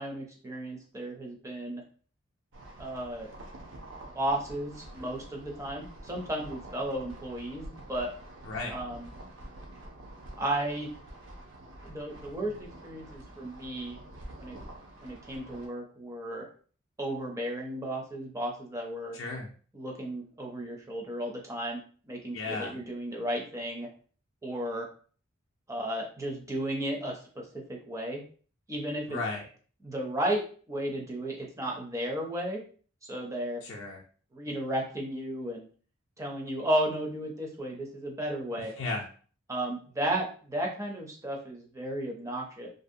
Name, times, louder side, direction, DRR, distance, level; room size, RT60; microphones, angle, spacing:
voice 1, 0.0-1.8 2.8-3.3 4.1-8.1 8.7-9.1 10.4-10.9 11.8-14.0 14.4-14.6 15.0-16.5 17.0-19.2 19.7-21.8 22.1-23.9 24.4-24.9 25.7-28.2 28.7-29.2 29.8-32.6 33.1-33.6 34.3-35.7 36.2-38.7 39.5-42.7, right 1 dB, 15° right, 0 dB, 0.4 m, -34 dB
sound 1, 2.5-15.7, right 1 dB, 60° right, 0.5 m, -47 dB
voice 2, 19.1-19.5 22.3-22.8 29.1-29.4 33.6-34.0 38.6-39.1, left 3 dB, 60° left, -3 dB, 0.4 m, -35 dB
2.5 x 2.0 x 2.6 m, 0.42 s
head